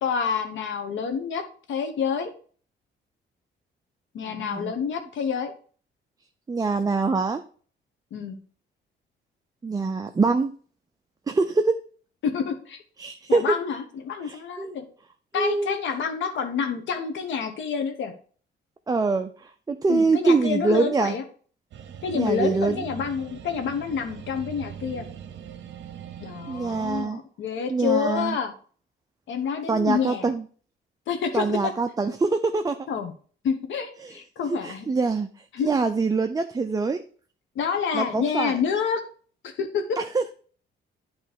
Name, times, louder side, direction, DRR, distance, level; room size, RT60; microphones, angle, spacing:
voice 1, 0.0-1.4 1.7-2.3 4.1-5.5 8.1-8.4 12.2-12.8 13.3-14.8 15.3-18.1 19.9-21.2 22.0-25.1 26.2-28.5 29.3-30.3 31.1-31.7 32.9-33.1 33.4-34.9 35.5-35.7 37.5-39.0 39.4-40.0, left 6 dB, 75° left, 7 dB, 1.2 m, -28 dB
voice 2, 4.2-4.7 6.5-7.4 9.6-10.5 11.3-11.8 13.0-13.5 14.2-14.7 15.4-15.8 18.9-21.1 22.1-22.8 26.5-27.2 27.7-28.4 29.7-30.4 31.3-32.8 34.0-34.1 34.5-35.3 35.6-37.0 37.9-38.5 40.0-40.3, right 4 dB, 20° right, 7 dB, 0.5 m, -24 dB
sound 1, 21.7-27.1, right 8 dB, 65° right, 0.8 m, -41 dB
8.9 x 3.2 x 5.1 m, 0.43 s
cardioid pair, 90°, 20 cm